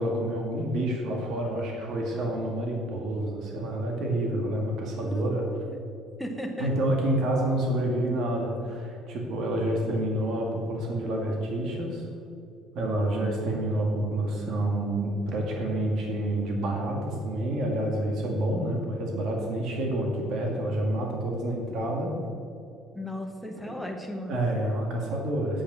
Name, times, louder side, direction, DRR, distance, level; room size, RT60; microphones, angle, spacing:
voice 1, 0.0-5.4 6.6-12.0 12.7-22.1 23.7-23.8 24.3-25.6, right 1 dB, 50° right, 0 dB, 2.1 m, -28 dB
voice 2, 5.0-5.8 6.2-6.7 22.9-24.3, equal, ahead, 2 dB, 1.1 m, -36 dB
8.6 x 8.3 x 6.2 m, 2.5 s
cardioid pair, 165°, 0 cm